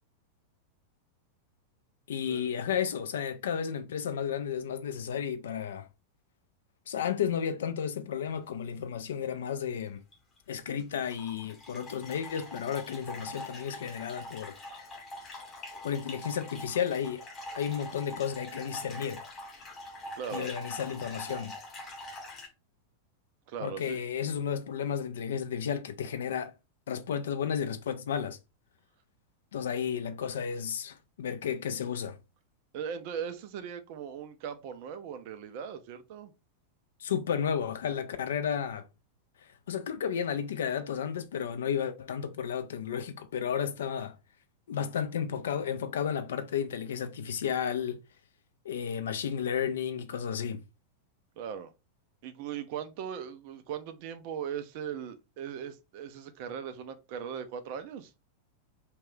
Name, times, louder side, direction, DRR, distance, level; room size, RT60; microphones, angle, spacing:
voice 1, 2.1-5.9 6.9-10.0 10.5-14.6 15.8-17.3 17.6-19.2 20.3-21.6 23.6-26.5 26.9-28.4 29.5-32.2 37.0-38.8 39.7-44.2 44.7-48.0 48.6-50.6, left 8 dB, 60° left, 0.3 m, -32 dB
sound 1, 10.1-10.4 10.8-22.5, left 2 dB, 25° left, 0.8 m, -44 dB
voice 2, 20.2-20.5 23.5-24.0 32.7-36.3 51.4-51.7 52.2-58.1, right 8 dB, 45° right, 0.4 m, -39 dB
2.3 x 2.2 x 3.4 m
figure-of-eight pair, 90°, 0 cm